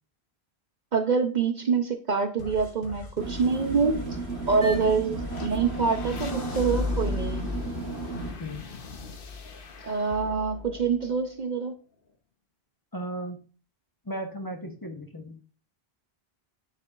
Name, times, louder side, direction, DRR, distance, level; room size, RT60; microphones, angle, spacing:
voice 1, 0.9-4.1 4.5-7.5 9.8-11.7, right 5 dB, 50° right, 6 dB, 0.7 m, -26 dB
sound 1, 2.4-11.7, left 4 dB, 60° left, 1.1 m, -41 dB
sound 2, 3.2-8.3, right 4 dB, 80° right, 1.6 m, -35 dB
sound 3, 5.3-9.7, left 4 dB, 85° left, 1.6 m, -35 dB
voice 2, 12.9-13.4 14.0-15.4, right 1 dB, 20° left, 4 dB, 0.8 m, -35 dB
7.6 x 6.8 x 2.4 m, 0.38 s
omnidirectional pair, 1.1 m